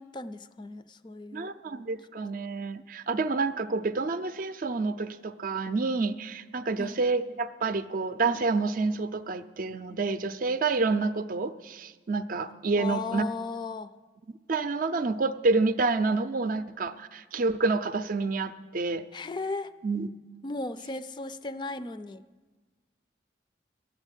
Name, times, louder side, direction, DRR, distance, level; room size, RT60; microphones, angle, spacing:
voice 1, 0.0-1.5 6.8-7.0 12.8-13.9 19.1-19.7 20.4-22.2, left 3 dB, 25° left, 13 dB, 0.4 m, -36 dB
voice 2, 1.3-13.3 14.5-19.0 19.8-20.1, right 3 dB, 50° right, 11 dB, 0.5 m, -28 dB
12.0 x 7.2 x 9.8 m, 1.3 s
head